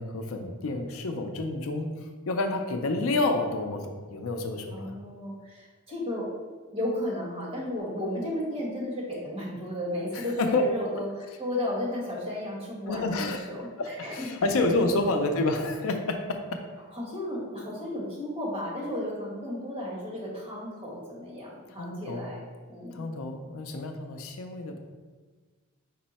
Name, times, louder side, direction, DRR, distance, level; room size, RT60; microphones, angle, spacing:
voice 1, 0.0-1.9 2.3-4.9 10.1-10.6 12.9-13.5 13.8-16.6 21.8-22.3 22.9-24.8, left 2 dB, 80° left, 4 dB, 0.4 m, -29 dB
voice 2, 4.7-6.3 6.7-14.3 14.8-15.1 16.9-23.1, left 1 dB, 25° right, -6 dB, 1.3 m, -34 dB
5.3 x 2.1 x 4.1 m, 1.4 s
head